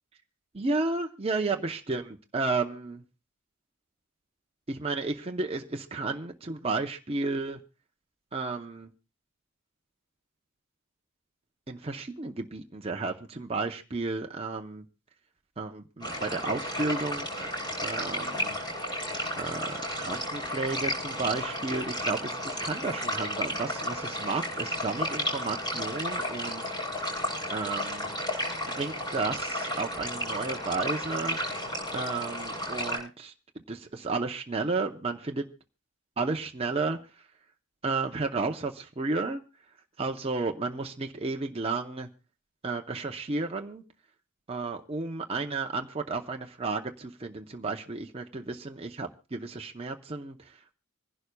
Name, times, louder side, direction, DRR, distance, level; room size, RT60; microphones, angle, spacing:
voice 1, 0.5-3.0 4.7-7.6 8.3-8.9 11.7-14.8 15.6-18.6 19.4-26.6 27.5-28.1 28.8-31.4 31.9-33.3 33.7-35.4 36.2-37.0 37.8-39.4 40.0-42.1 42.6-43.8 44.5-50.6, right 3 dB, 25° right, 2 dB, 0.7 m, -32 dB
sound 1, 16.0-33.0, equal, 20° left, 7.8 m, -33 dB
26.0 x 11.0 x 2.3 m, 0.31 s
head